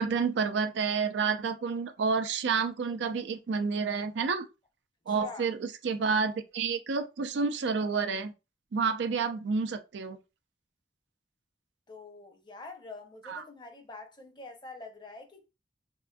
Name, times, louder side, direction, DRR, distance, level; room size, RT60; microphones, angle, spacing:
voice 1, 0.0-4.4 5.1-8.3 8.7-10.2 13.3-13.4, right 5 dB, 85° right, 0.4 m, -29 dB
voice 2, 5.1-5.5 11.9-15.5, left 3 dB, 25° left, 0.5 m, -46 dB
3.6 x 2.4 x 2.2 m
head